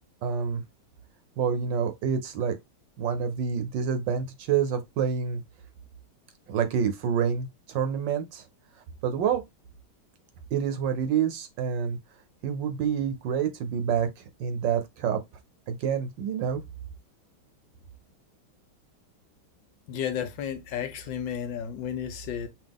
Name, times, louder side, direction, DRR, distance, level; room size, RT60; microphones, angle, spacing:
voice 1, 0.2-0.6 1.4-2.5 3.0-5.4 6.5-8.4 9.0-9.4 10.5-12.0 12.4-15.2 15.7-16.6, right 7 dB, 70° right, 1.3 m, -27 dB
voice 2, 19.9-22.5, left 8 dB, 70° left, 1.3 m, -32 dB
5.9 x 2.4 x 3.5 m
omnidirectional pair, 2.2 m